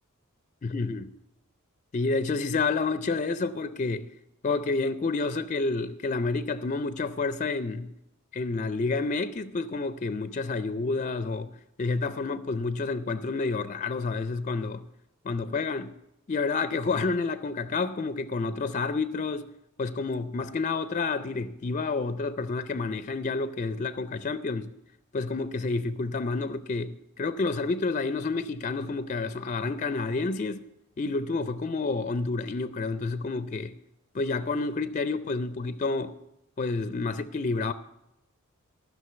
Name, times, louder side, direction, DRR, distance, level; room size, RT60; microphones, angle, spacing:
voice 1, 0.6-1.1 1.9-4.1 4.4-7.9 8.3-11.5 11.8-14.8 15.2-15.9 16.3-19.5 19.8-24.7 25.1-30.7 31.0-33.7 34.1-36.2 36.6-37.7, left 3 dB, 35° left, 0.4 m, -29 dB
14.5 x 6.3 x 7.8 m
head